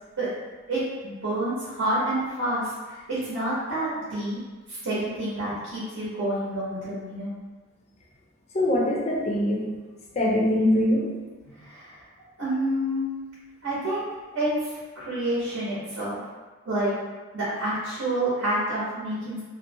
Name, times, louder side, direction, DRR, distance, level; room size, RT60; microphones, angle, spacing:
voice 1, 0.7-4.4 4.7-7.3 11.6-12.0 12.4-13.1 13.6-14.1 14.3-16.2 16.6-16.9 17.3-19.4, right 1 dB, 65° right, -9 dB, 0.8 m, -28 dB
voice 2, 8.5-9.7 10.2-11.1, left 1 dB, 30° left, -3 dB, 0.5 m, -22 dB
2.5 x 2.1 x 2.7 m, 1.3 s
head